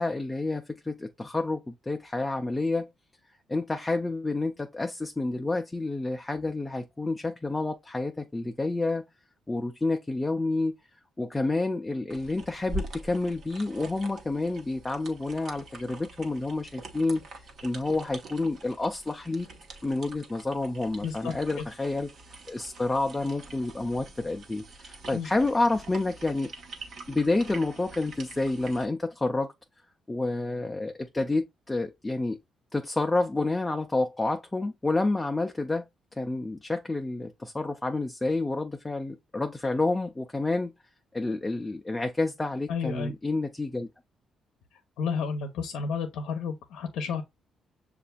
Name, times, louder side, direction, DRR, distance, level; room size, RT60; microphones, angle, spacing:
voice 1, 0.0-2.9 3.5-9.0 9.5-10.7 11.2-17.2 17.6-19.5 19.8-22.1 22.5-26.5 27.1-29.5 30.1-32.4 32.7-35.8 36.2-40.7 41.1-43.9, left 2 dB, 15° left, 0.5 m, -29 dB
sound 1, 12.1-28.9, right 2 dB, 60° right, 1.1 m, -44 dB
voice 2, 21.0-21.7 25.1-25.3 42.7-43.1 45.0-47.2, left 5 dB, 80° left, 0.6 m, -31 dB
6.6 x 2.5 x 2.2 m
cardioid pair, 90°, 0 cm